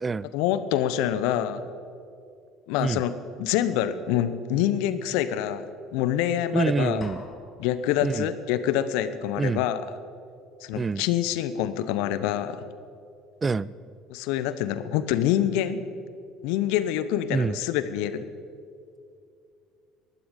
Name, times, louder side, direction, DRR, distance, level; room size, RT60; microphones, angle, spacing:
voice 1, 0.3-1.6 2.7-3.1 3.4-5.7 5.9-7.0 7.6-9.8 10.6-12.6 14.1-15.8 16.4-18.3, left 11 dB, 65° left, 13 dB, 0.8 m, -26 dB
voice 2, 6.5-7.2 8.0-8.3 9.4-9.6 10.7-11.0 13.4-13.7 17.3-17.6, right 4 dB, 25° right, 20 dB, 0.4 m, -26 dB
sound 1, 7.0-8.0, left 4 dB, 35° left, 2.0 m, -44 dB
19.0 x 12.5 x 5.2 m, 2.5 s
hypercardioid pair, 65°, 0 cm